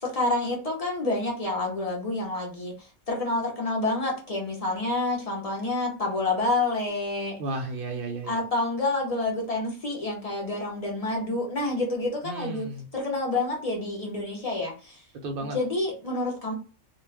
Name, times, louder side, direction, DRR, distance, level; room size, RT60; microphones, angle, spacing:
voice 1, 0.0-7.4 8.3-12.7 12.9-15.0 15.5-16.5, left 2 dB, 40° left, -1 dB, 0.5 m, -28 dB
voice 2, 7.4-8.4 12.2-12.9 15.2-15.6, right 2 dB, 65° right, 2 dB, 0.5 m, -33 dB
2.4 x 2.3 x 3.2 m, 0.35 s
omnidirectional pair, 1.5 m